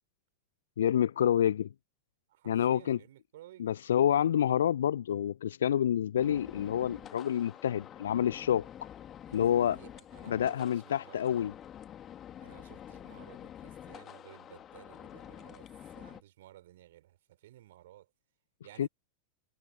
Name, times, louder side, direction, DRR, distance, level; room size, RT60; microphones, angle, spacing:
voice 1, 0.8-1.7 2.5-3.0 3.6-8.7 9.3-9.8 10.3-11.5 18.8-18.9, left 10 dB, 65° left, 0.3 m, -28 dB
voice 2, 2.3-3.8 9.3-11.3 12.4-18.1 18.6-18.9, right 14 dB, 55° right, 4.2 m, -55 dB
sound 1, 6.2-16.2, left 10 dB, 25° left, 2.8 m, -48 dB
figure-of-eight pair, 90°, 0 cm